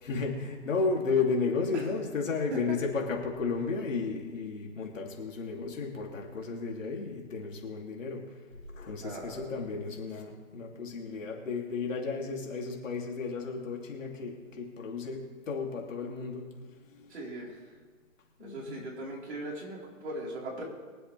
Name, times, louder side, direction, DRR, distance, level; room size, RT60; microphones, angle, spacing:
voice 1, 0.0-8.2 8.5-17.1 18.4-18.8, left 4 dB, 65° left, -1 dB, 3.2 m, -33 dB
voice 2, 9.0-9.4 17.1-17.6 18.4-20.6, right 1 dB, 50° right, -4 dB, 4.6 m, -39 dB
23.0 x 7.8 x 3.5 m, 1.4 s
hypercardioid pair, 170°, 41 cm